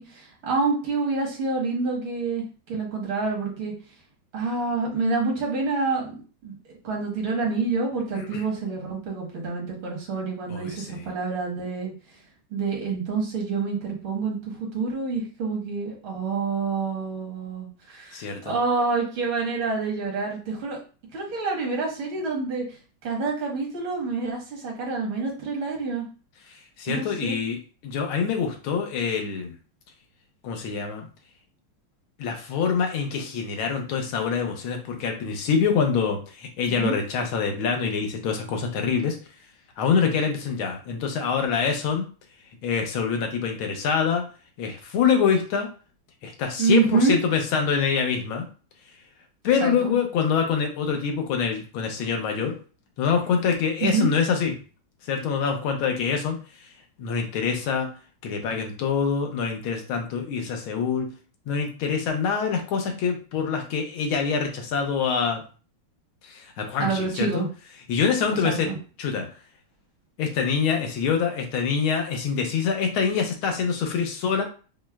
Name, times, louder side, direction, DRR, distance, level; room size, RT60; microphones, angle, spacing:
voice 1, 0.0-3.7 4.3-6.1 6.4-6.6 6.8-11.9 12.5-20.8 21.1-22.6 23.0-26.1 26.9-27.4 36.6-37.0 46.6-47.2 49.6-49.9 53.8-54.1 66.8-67.5 68.4-68.8, right 4 dB, 75° right, -2 dB, 2.0 m, -27 dB
voice 2, 10.5-11.1 18.1-18.6 26.8-29.5 30.4-31.1 32.2-39.2 39.8-42.1 42.6-44.2 44.6-45.7 46.2-48.5 49.4-52.6 53.0-54.5 55.1-56.7 57.0-57.9 58.2-61.1 61.5-65.4 66.2-67.4 67.9-68.7 69.0-69.3 70.2-74.4, left 6 dB, 80° left, 3 dB, 1.6 m, -25 dB
5.9 x 2.1 x 2.3 m, 0.37 s
omnidirectional pair, 2.3 m